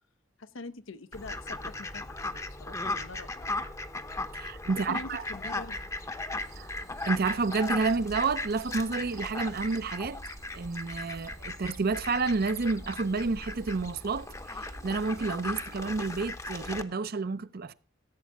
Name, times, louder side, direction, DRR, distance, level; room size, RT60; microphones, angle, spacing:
voice 1, 0.4-3.5 4.9-5.8, left 2 dB, 80° left, 0.8 m, -44 dB
Fowl, 1.1-16.8, left 2 dB, 15° left, 0.8 m, -37 dB
voice 2, 4.3-5.2 6.6-6.7 7.0-10.2 10.5-17.7, right 4 dB, 50° right, 0.6 m, -30 dB
sound 1, 6.4-16.2, right 3 dB, 85° right, 2.0 m, -55 dB
15.5 x 8.4 x 3.6 m
head